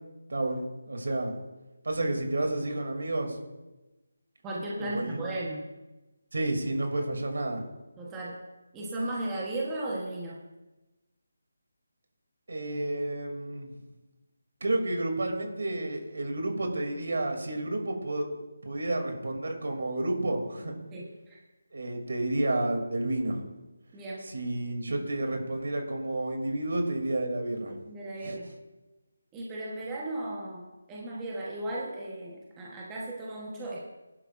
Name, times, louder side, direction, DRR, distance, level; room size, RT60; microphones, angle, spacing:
voice 1, 0.3-1.3 1.8-3.4 4.8-5.3 6.3-7.6 12.5-13.7 14.6-18.3 18.6-20.7 21.7-23.4 24.2-27.8 28.2-28.4, right 1 dB, 70° right, 3 dB, 2.6 m, -30 dB
voice 2, 4.4-5.6 8.0-8.4 8.7-10.4 20.9-21.4 23.9-24.3 27.9-28.5 29.3-33.9, right 1 dB, 10° right, -4 dB, 1.1 m, -36 dB
18.5 x 11.0 x 2.5 m, 1.1 s
figure-of-eight pair, 175°, 0 cm